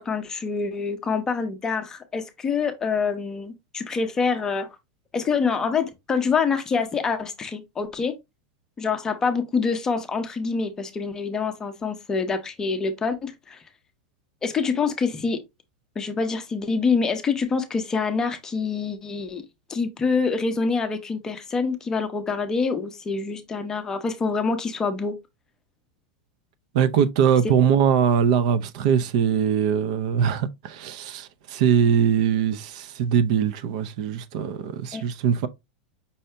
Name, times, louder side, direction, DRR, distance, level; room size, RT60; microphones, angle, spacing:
voice 1, 0.0-4.7 5.1-8.2 8.8-13.6 14.4-15.4 16.0-19.4 19.7-25.1 34.9-35.0, left 5 dB, 15° left, 0.6 m, -26 dB
voice 2, 26.7-35.5, right 8 dB, 50° right, 0.6 m, -22 dB
5.5 x 2.7 x 3.3 m
supercardioid pair, 170°, 5 cm